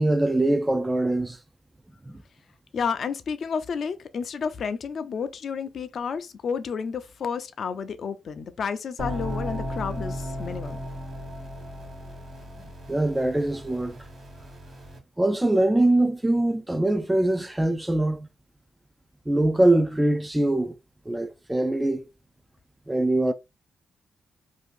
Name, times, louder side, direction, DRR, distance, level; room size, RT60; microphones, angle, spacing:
voice 1, 0.0-1.4 2.1-2.2 12.9-14.0 15.2-18.3 19.3-20.8 21.1-22.1 22.9-23.3, right 1 dB, 15° right, 0.4 m, -23 dB
voice 2, 2.7-10.8, left 6 dB, 65° left, 0.5 m, -31 dB
sound 1, 9.0-15.0, equal, 60° right, 1.3 m, -36 dB
2.7 x 2.4 x 3.7 m
supercardioid pair, 55°, 0 cm